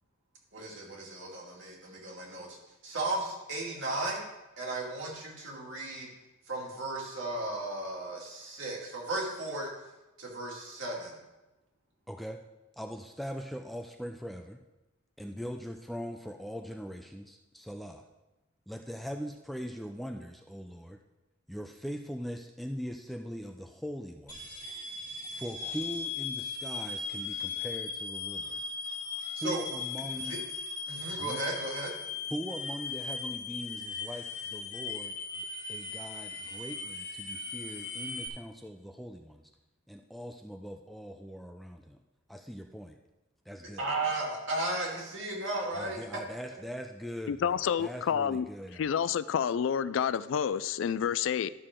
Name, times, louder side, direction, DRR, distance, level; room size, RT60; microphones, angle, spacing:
voice 1, 0.5-2.6 2.8-4.2 4.6-6.1 6.5-9.7 10.2-11.2 29.4-29.6 30.2-30.4 30.9-31.9 43.8-46.0, right 2 dB, 65° right, -3 dB, 2.6 m, -35 dB
voice 2, 12.1-12.4 12.8-14.6 15.2-18.0 18.7-21.0 21.5-24.6 25.3-28.6 29.4-30.4 31.2-31.4 32.3-39.5 39.9-42.0 42.3-43.0 43.5-43.9 45.7-48.9, equal, ahead, 4 dB, 0.4 m, -41 dB
sound 1, 24.3-38.3, left 4 dB, 40° left, 1.7 m, -38 dB
voice 3, 47.3-48.5 48.8-51.5, left 8 dB, 65° left, 17 dB, 0.3 m, -29 dB
12.0 x 6.6 x 3.7 m, 1.0 s
head